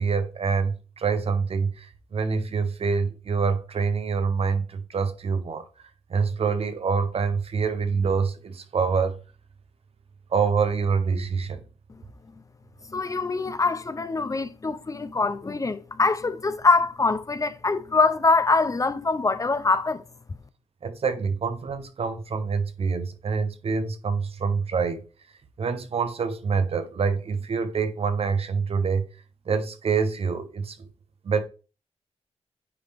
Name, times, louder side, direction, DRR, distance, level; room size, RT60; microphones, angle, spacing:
voice 1, 0.0-5.7 6.1-9.2 10.3-11.6 20.8-25.0 25.6-29.0 29.5-30.8 31.2-31.4, right 5 dB, 60° right, 0.9 m, -26 dB
voice 2, 12.9-20.0, left 3 dB, 30° left, 0.5 m, -24 dB
9.6 x 3.4 x 3.5 m
cardioid pair, 70°, 12 cm